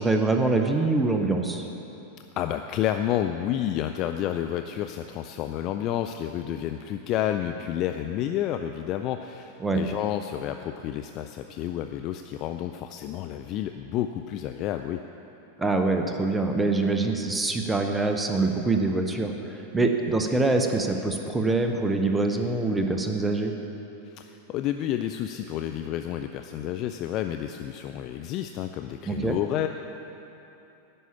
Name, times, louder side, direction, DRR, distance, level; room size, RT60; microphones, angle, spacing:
voice 1, 0.0-1.6 9.6-9.8 15.6-23.5 29.1-29.3, right 3 dB, 10° right, 4 dB, 0.8 m, -24 dB
voice 2, 2.4-15.0 24.1-29.7, left 11 dB, 40° left, 7 dB, 0.3 m, -30 dB
11.0 x 5.6 x 8.4 m, 2.9 s
figure-of-eight pair, 90°, 0 cm